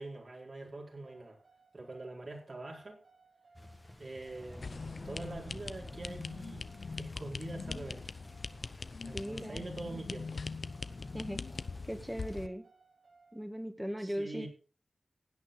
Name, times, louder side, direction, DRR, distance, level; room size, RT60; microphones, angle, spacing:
voice 1, 0.0-1.4 1.7-3.0 4.0-6.7 7.0-8.1 9.0-10.4 14.0-14.5, right 2 dB, 55° right, 4.5 m, -44 dB
sound 1, 0.6-13.4, right 4 dB, 80° right, 7.6 m, -65 dB
sound 2, 3.5-12.5, left 1 dB, 15° left, 1.5 m, -52 dB
sound 3, 4.6-12.5, left 4 dB, 70° left, 0.7 m, -42 dB
voice 2, 9.1-9.6 11.1-11.4 11.8-12.7 13.3-14.5, equal, 5° right, 2.0 m, -38 dB
16.5 x 9.2 x 3.9 m
wide cardioid pair, 70°, 0 cm